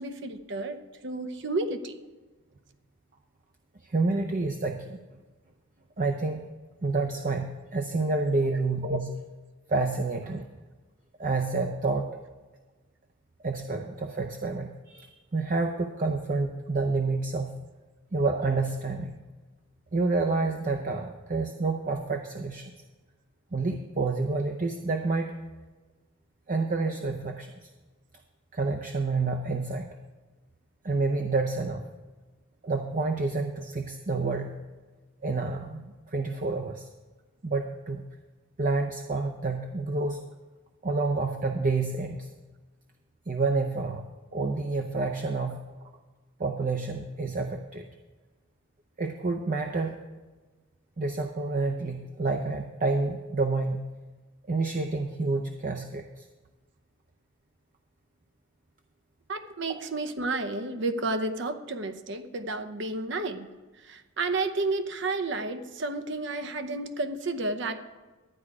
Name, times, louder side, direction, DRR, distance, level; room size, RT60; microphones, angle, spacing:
voice 1, 0.0-1.9 8.4-8.6 59.3-63.5 63.8-67.8, right 2 dB, 65° right, 9 dB, 0.9 m, -31 dB
voice 2, 3.8-5.0 6.0-6.4 6.8-9.2 9.7-10.5 11.2-12.1 13.4-17.6 18.1-19.2 19.9-22.7 23.5-25.3 26.5-27.7 28.5-29.9 30.8-31.9 32.6-34.6 35.2-36.9 37.4-38.1 38.6-40.2 40.8-42.3 43.3-44.1 44.3-45.6 46.4-47.9 49.0-50.0 51.0-53.9 54.5-56.3, right 3 dB, 40° right, 5 dB, 0.6 m, -29 dB
12.0 x 9.5 x 4.9 m, 1.3 s
head